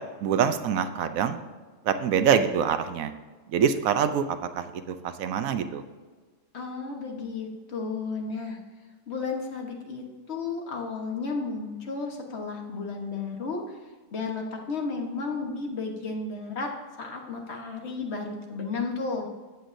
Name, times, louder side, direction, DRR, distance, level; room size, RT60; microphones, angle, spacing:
voice 1, 0.2-1.4 1.8-3.1 3.5-5.8, right 7 dB, 85° right, 9 dB, 1.1 m, -25 dB
voice 2, 6.5-8.6 9.1-13.6 14.1-16.7 17.0-19.3, left 4 dB, 55° left, 1 dB, 1.5 m, -33 dB
13.5 x 7.8 x 2.6 m, 1.4 s
omnidirectional pair, 1.4 m